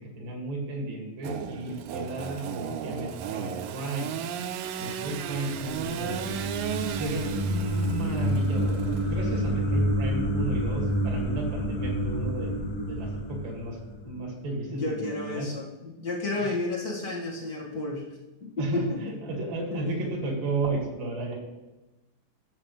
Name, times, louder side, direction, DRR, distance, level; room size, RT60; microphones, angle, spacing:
voice 1, 0.2-4.2 4.8-6.2 6.8-13.8 14.0-15.5 16.4-16.6 18.6-21.4, right 2 dB, 70° right, -1 dB, 3.9 m, -33 dB
Engine / Sawing, 1.2-9.5, right 8 dB, 85° right, 2.3 m, -35 dB
sound 1, 5.0-14.2, equal, 70° left, 3.1 m, -29 dB
voice 2, 14.7-18.1 18.4-19.0 19.3-19.9, left 2 dB, 35° left, -4 dB, 1.8 m, -32 dB
14.5 x 7.7 x 3.3 m, 1.1 s
omnidirectional pair, 4.1 m